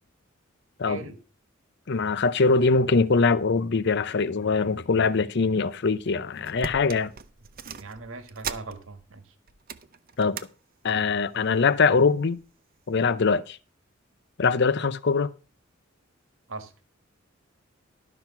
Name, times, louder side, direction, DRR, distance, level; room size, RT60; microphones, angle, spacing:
voice 1, 0.9-1.2 7.8-9.3 16.5-16.7, right 3 dB, 80° right, 1.5 m, -39 dB
voice 2, 1.9-7.1 10.2-10.4 10.8-12.4 12.9-13.6 14.4-15.3, left 4 dB, 55° left, 0.6 m, -22 dB
sound 1, 6.0-6.1 6.4-9.1 9.5-10.5 10.9-11.2 12.0-12.5 12.9-13.0, right 6 dB, 45° right, 0.7 m, -39 dB
12.0 x 6.1 x 5.8 m
head